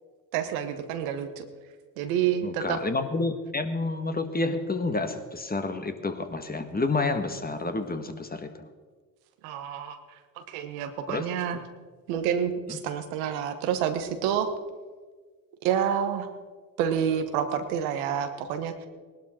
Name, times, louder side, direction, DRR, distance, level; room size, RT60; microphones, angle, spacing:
voice 1, 0.3-1.4 2.0-2.8 9.4-10.0 10.4-11.6 12.1-14.5 15.6-16.3 16.8-18.9, right 8 dB, 85° right, 8 dB, 1.3 m, -28 dB
voice 2, 2.4-8.7 11.1-11.3 11.5-11.6 12.7-12.8, left 3 dB, 20° left, 7 dB, 1.7 m, -29 dB
18.5 x 12.0 x 4.4 m, 1.4 s
hypercardioid pair, 55°, 41 cm